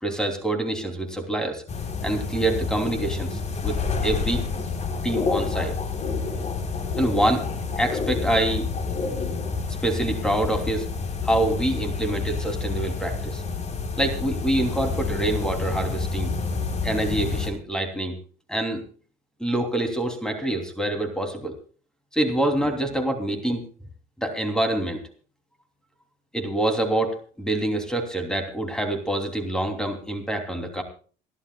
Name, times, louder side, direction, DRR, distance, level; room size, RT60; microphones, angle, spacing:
voice 1, 0.0-1.6 2.0-4.4 5.0-5.8 7.0-7.5 7.8-8.7 9.8-10.9 11.2-13.4 14.0-16.3 16.8-18.1 18.5-18.8 19.4-21.5 22.1-23.6 24.2-25.0 26.3-30.8, right 1 dB, 5° left, 5 dB, 3.1 m, -26 dB
sound 1, 1.7-17.5, left 4 dB, 40° left, 3.8 m, -28 dB
28.0 x 11.5 x 2.3 m, 0.40 s
cardioid pair, 110°, 17 cm